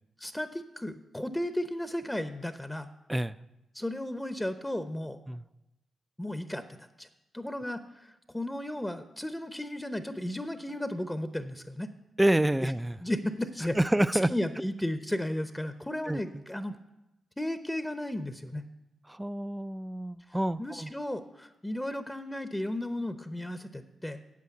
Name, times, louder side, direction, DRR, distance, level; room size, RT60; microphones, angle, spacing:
voice 1, 0.2-2.9 3.7-5.2 6.2-7.1 7.3-11.9 12.6-12.7 13.0-13.8 14.3-16.8 17.4-18.6 20.6-24.2, left 1 dB, 10° left, 10 dB, 0.8 m, -34 dB
voice 2, 12.2-13.0 13.8-14.3 16.1-16.4 19.1-20.9, right 1 dB, 10° right, 15 dB, 0.4 m, -28 dB
8.5 x 7.6 x 9.0 m, 0.94 s
cardioid pair, 60°, 0 cm